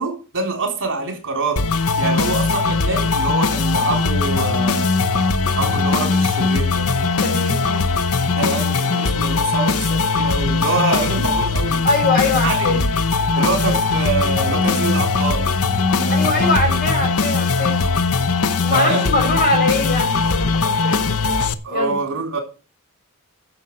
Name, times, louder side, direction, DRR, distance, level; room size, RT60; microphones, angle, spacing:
voice 1, 0.0-1.7 2.0-4.9 5.5-6.9 8.4-11.8 12.4-12.8 13.4-15.5 16.0-16.8 18.7-19.0 21.6-22.4, right 3 dB, 60° right, 3.7 m, -25 dB
sound 1, 1.6-21.5, left 4 dB, 75° left, 0.9 m, -19 dB
voice 2, 7.2-7.8 11.8-12.9 13.3-13.8 16.1-17.8 18.6-21.2 21.7-22.0, left 2 dB, 45° left, 6.1 m, -22 dB
9.9 x 7.3 x 7.6 m
head